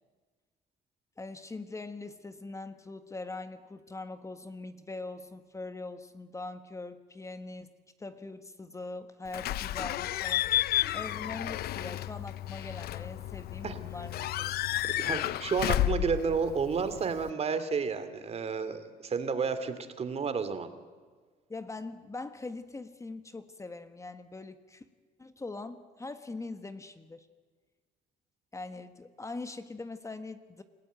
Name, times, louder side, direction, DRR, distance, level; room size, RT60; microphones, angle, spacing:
voice 1, 1.2-14.5 21.5-24.8 25.2-27.3 28.5-30.6, left 3 dB, 20° left, 10 dB, 1.4 m, -42 dB
Slam / Squeak / Alarm, 9.3-17.3, left 13 dB, 65° left, 0.7 m, -32 dB
voice 2, 15.0-20.7, right 5 dB, 40° right, 11 dB, 2.5 m, -31 dB
28.5 x 16.5 x 9.4 m, 1.5 s
cardioid pair, 110°, 17 cm